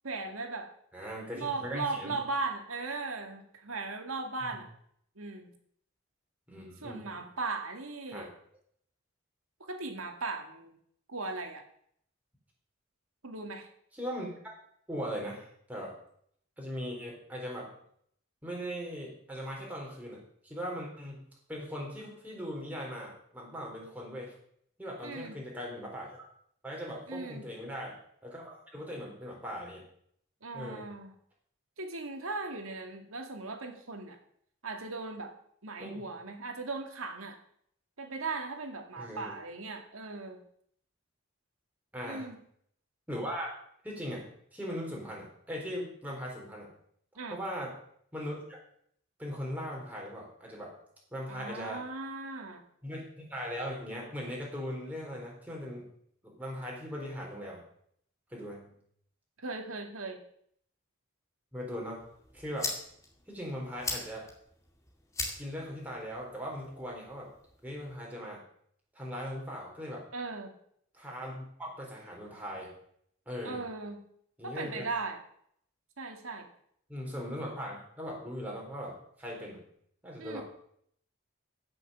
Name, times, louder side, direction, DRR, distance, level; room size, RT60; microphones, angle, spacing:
voice 1, 0.0-0.7 1.3-4.7 5.2-5.5 6.8-8.3 9.7-10.7 11.1-11.6 13.2-13.7 25.0-25.4 27.1-27.5 30.4-31.1 31.8-34.2 34.6-35.3 35.6-37.4 38.0-40.4 42.0-42.4 47.2-47.4 51.3-52.6 59.4-60.2 70.1-70.5 73.4-74.0 74.4-75.2 76.0-76.5 80.2-80.4, right 3 dB, 85° right, 5 dB, 2.3 m, -38 dB
voice 2, 0.9-2.1 4.4-4.6 6.5-7.0 8.1-8.2 13.9-14.3 14.9-15.9 16.6-17.7 18.4-21.2 21.5-24.3 24.8-26.2 26.6-28.0 28.2-29.8 30.5-30.9 35.8-36.0 39.0-39.3 41.9-42.2 43.1-43.5 43.8-46.7 47.3-47.7 48.1-48.6 49.2-50.7 51.1-51.8 52.8-55.9 56.2-57.6 58.3-58.7 61.5-62.0 62.3-62.7 63.3-64.2 65.4-67.3 67.6-68.4 68.9-70.0 70.9-72.7 73.3-73.6 74.4-74.8 76.9-79.6 80.0-80.4, equal, 10° right, -3 dB, 4.1 m, -39 dB
sound 1, 62.0-68.0, left 3 dB, 15° left, 2.3 m, -42 dB
15.5 x 6.9 x 7.0 m, 0.67 s
head